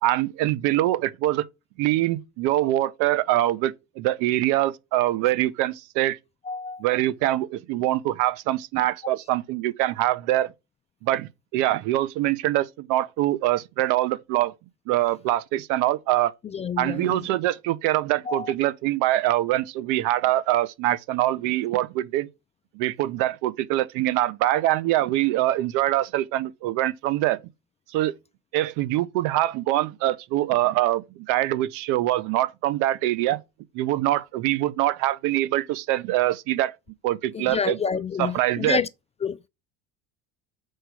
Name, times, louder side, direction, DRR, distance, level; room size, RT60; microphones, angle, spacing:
voice 1, 0.0-1.4 1.8-6.2 6.8-10.5 11.0-14.5 14.9-16.3 16.8-22.3 22.7-27.4 27.9-28.2 28.5-33.4 33.7-36.8 37.0-37.8 38.2-38.8, right 15 dB, 70° right, 0.9 m, -24 dB
voice 2, 6.5-6.8 16.5-17.2 18.3-18.5 37.3-38.9 39.2-39.5, left 6 dB, 20° left, 0.3 m, -28 dB
6.6 x 4.7 x 6.1 m
supercardioid pair, 115°, 32 cm